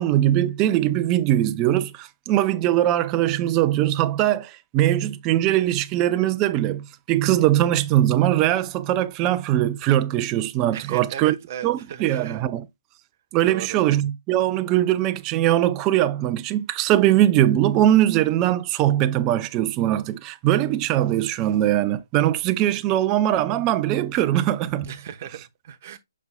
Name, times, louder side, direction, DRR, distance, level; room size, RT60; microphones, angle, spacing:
voice 1, 0.0-11.3 11.6-12.7 13.3-24.9, right 13 dB, 15° right, 0.4 m, -21 dB
voice 2, 10.7-12.4 13.5-13.8 24.8-26.0, right 9 dB, 30° right, 0.9 m, -36 dB
8.4 x 5.4 x 2.2 m
hypercardioid pair, 165°, 2 cm